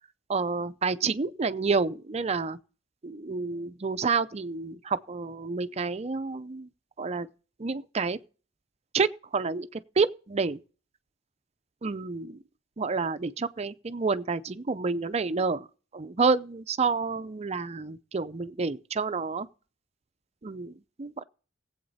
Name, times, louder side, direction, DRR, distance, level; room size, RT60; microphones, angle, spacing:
voice 1, 0.3-2.6 3.0-6.7 7.0-7.3 7.6-8.2 8.9-10.6 11.8-12.4 12.8-15.7 15.9-19.5 20.4-21.2, right 4 dB, 35° right, 0.5 m, -29 dB
17.5 x 8.0 x 4.1 m
head